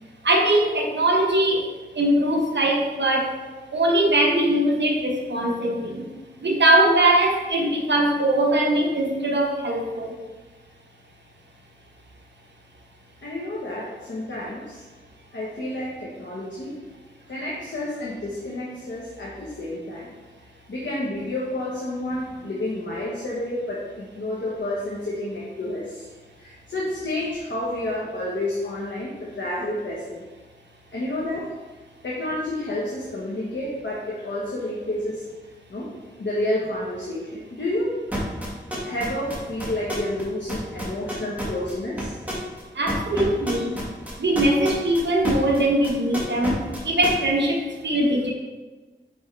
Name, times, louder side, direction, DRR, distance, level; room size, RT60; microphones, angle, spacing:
voice 1, 0.2-3.4 3.7-6.1 6.4-10.1 42.7-43.8 44.2-48.3, right 1 dB, 70° right, 0 dB, 0.9 m, -21 dB
voice 2, 13.2-14.8 15.3-16.7 17.3-20.1 20.7-26.1 26.4-30.2 30.9-31.5 32.0-35.2 35.7-35.9 36.2-38.0 38.9-42.2, left 1 dB, 80° left, -6 dB, 1.2 m, -30 dB
sound 1, 38.1-40.2 40.5-45.6 45.8-47.1, right 1 dB, 10° right, 1.6 m, -30 dB
5.3 x 5.3 x 3.3 m, 1.3 s
wide cardioid pair, 65°, 19 cm